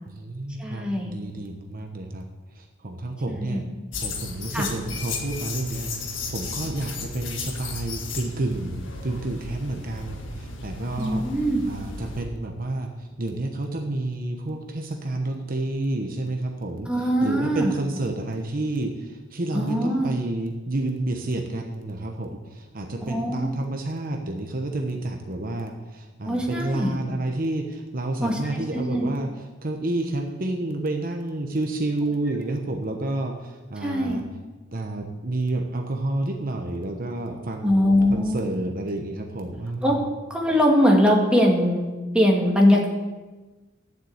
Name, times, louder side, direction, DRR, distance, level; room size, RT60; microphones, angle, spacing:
voice 1, 0.1-3.6 4.0-11.3 11.6-34.2 34.7-40.1, right 2 dB, 45° right, 3 dB, 1.1 m, -30 dB
voice 2, 0.6-1.1 3.3-3.6 4.5-4.7 11.0-11.7 16.9-17.7 19.5-20.1 23.0-23.5 26.3-26.9 28.2-28.4 28.7-29.1 33.8-34.2 37.6-38.4 39.8-40.0 40.3-42.9, equal, 5° right, -1 dB, 1.9 m, -21 dB
sound 1, 3.9-12.2, left 3 dB, 70° left, 1.8 m, -34 dB
12.0 x 7.5 x 8.1 m, 1.2 s
head